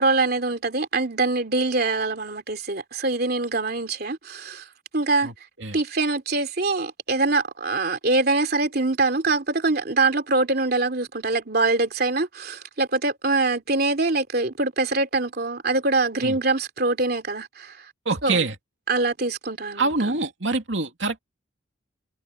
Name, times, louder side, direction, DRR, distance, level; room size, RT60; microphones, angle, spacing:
voice 1, 0.0-4.7 4.9-5.3 5.7-17.9 18.2-18.4 18.9-20.1, right 3 dB, 55° right, 3.0 m, -24 dB
voice 2, 5.2-5.8 16.2-16.3 18.0-18.5 19.8-21.2, right 3 dB, 70° right, 2.9 m, -25 dB
head